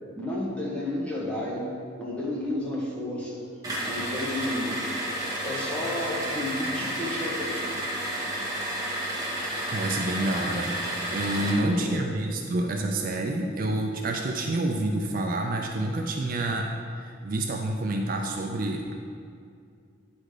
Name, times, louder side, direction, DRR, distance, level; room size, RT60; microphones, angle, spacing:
voice 1, 0.1-1.7 2.0-3.4 3.8-7.6 11.4-12.1, left 1 dB, 5° left, -5 dB, 1.3 m, -32 dB
sound 1, 3.6-11.7, right 1 dB, 20° right, 1.2 m, -31 dB
voice 2, 9.3-10.8 11.1-16.7 17.0-18.9, right 1 dB, 45° right, 2 dB, 0.4 m, -28 dB
9.7 x 4.2 x 4.9 m, 2.3 s
head